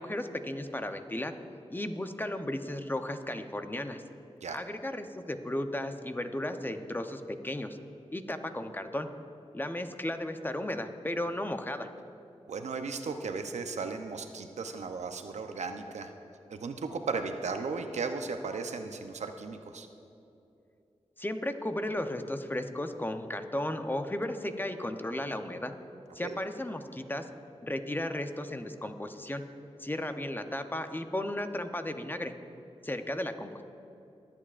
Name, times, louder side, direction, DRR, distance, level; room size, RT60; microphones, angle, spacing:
voice 1, 0.0-1.3 1.7-4.0 4.5-7.8 8.1-9.1 9.5-11.9 21.2-25.7 26.1-27.2 27.6-29.4 29.8-32.3 32.8-33.6, left 1 dB, 15° left, 7 dB, 0.7 m, -34 dB
voice 2, 12.5-16.1 16.5-19.9 26.2-26.4, right 4 dB, 80° right, 6 dB, 0.7 m, -36 dB
20.0 x 8.6 x 2.5 m, 2.7 s
cardioid pair, 55°, 12 cm